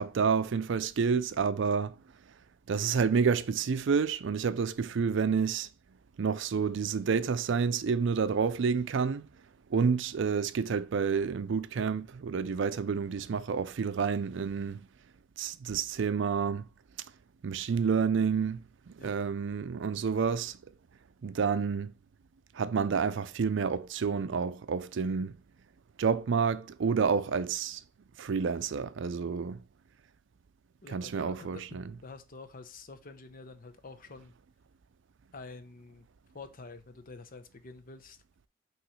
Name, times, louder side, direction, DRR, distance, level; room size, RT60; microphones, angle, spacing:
voice 1, 0.0-1.9 2.7-5.7 6.2-9.3 9.7-14.9 15.4-16.7 17.4-20.6 21.2-21.9 22.5-25.3 26.0-27.8 28.2-29.6 30.9-31.9, right 6 dB, 65° right, 0.4 m, -29 dB
voice 2, 30.8-34.3 35.3-36.1 36.3-38.2, left 3 dB, 45° left, 0.7 m, -48 dB
5.8 x 3.1 x 5.5 m
head